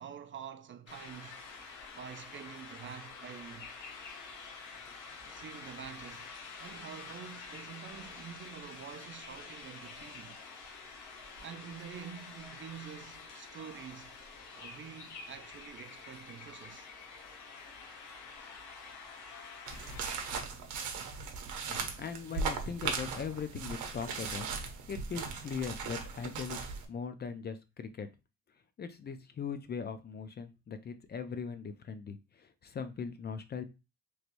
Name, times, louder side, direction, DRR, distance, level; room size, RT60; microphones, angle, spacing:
voice 1, 0.0-1.4 1.9-3.7 5.3-6.3 6.6-10.4 11.4-14.2 14.5-16.9, right 8 dB, 40° right, 0.4 m, -47 dB
sound 1, 0.9-20.4, left 4 dB, 90° left, 1.0 m, -48 dB
sound 2, 19.7-26.9, right 5 dB, 75° right, 0.8 m, -38 dB
voice 2, 21.7-24.5 24.9-28.1 28.8-33.6, left 6 dB, 35° left, 0.4 m, -40 dB
3.1 x 3.0 x 2.5 m
cardioid pair, 90°, 30 cm